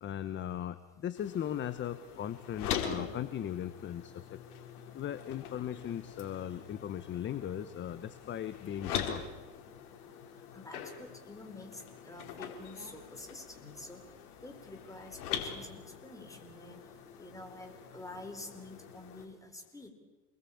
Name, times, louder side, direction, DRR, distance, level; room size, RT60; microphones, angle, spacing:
voice 1, 0.0-4.4 4.9-9.2, left 10 dB, 25° left, 13 dB, 1.1 m, -38 dB
sound 1, 1.2-19.3, left 8 dB, 75° left, 4.4 m, -43 dB
voice 2, 10.5-14.0 14.4-16.8 17.2-19.9, left 2 dB, 5° left, 5 dB, 4.2 m, -48 dB
28.0 x 21.0 x 8.7 m, 1.2 s
supercardioid pair, 135°, 45 cm